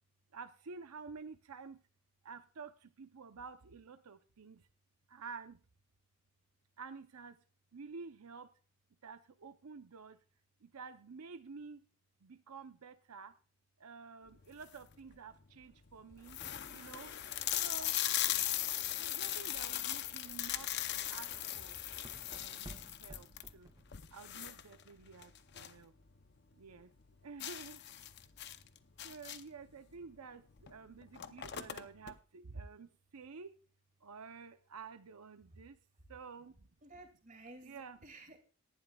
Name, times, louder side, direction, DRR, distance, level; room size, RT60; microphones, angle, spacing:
voice 1, 0.3-1.8 2.2-4.7 5.1-5.6 6.8-7.4 7.7-8.5 9.0-10.2 10.6-11.8 12.2-13.4 13.8-16.4 16.7-17.1 17.6-18.0 19.0-20.7 21.1-21.8 22.3-23.7 24.1-25.9 26.6-26.9 27.2-27.8 29.0-33.5 34.0-35.8 36.1-36.7 37.6-38.0, right 5 dB, 85° right, 9 dB, 0.7 m, -50 dB
sound 1, 14.4-14.9 15.5-15.6 15.9-16.0 16.3-25.8 26.2-26.3 26.6-26.7 27.4-29.6 30.6-30.7 31.0-32.1, left 12 dB, 50° left, 0.6 m, -38 dB
sound 2, 16.1-22.1, left 1 dB, 15° left, 2.0 m, -62 dB
sound 3, 18.6-24.3, right 1 dB, 15° right, 0.6 m, -57 dB
voice 2, 36.8-38.4, right 2 dB, 35° right, 5 dB, 2.4 m, -54 dB
18.5 x 11.0 x 2.3 m, 0.36 s
head